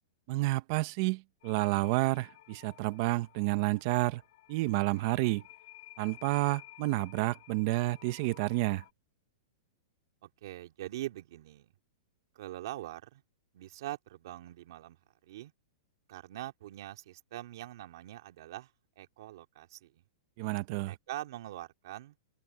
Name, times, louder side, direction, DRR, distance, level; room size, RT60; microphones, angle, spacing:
voice 1, 0.3-4.2 4.5-5.4 6.0-8.8 20.4-20.9, right 20 dB, 35° right, 1.2 m, -30 dB
sound 1, 1.4-8.9, left 17 dB, 50° left, 7.4 m, -55 dB
voice 2, 10.2-11.7 12.3-13.2 13.5-15.0 15.2-15.5 16.1-18.7 19.0-20.0 20.9-22.1, right 15 dB, 55° right, 2.6 m, -43 dB
open air
supercardioid pair, 165°, 3 cm